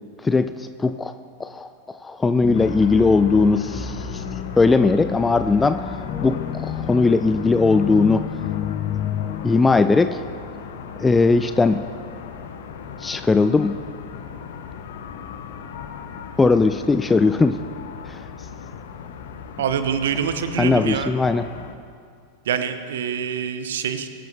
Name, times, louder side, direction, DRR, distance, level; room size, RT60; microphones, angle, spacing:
voice 1, 0.2-1.1 1.4-4.2 4.6-5.8 6.2-8.2 9.4-10.2 11.0-11.9 13.0-13.7 16.4-17.6 18.1-18.2 20.6-21.4, left 3 dB, 10° left, 10 dB, 0.4 m, -19 dB
sound 1, 2.4-9.6, left 9 dB, 30° left, 0.8 m, -30 dB
sound 2, 2.5-21.7, left 7 dB, 55° left, 0.9 m, -38 dB
voice 2, 19.6-21.1 22.4-24.1, right 8 dB, 60° right, 10 dB, 0.9 m, -25 dB
22.0 x 12.0 x 3.1 m, 2.3 s
figure-of-eight pair, 90°, 0 cm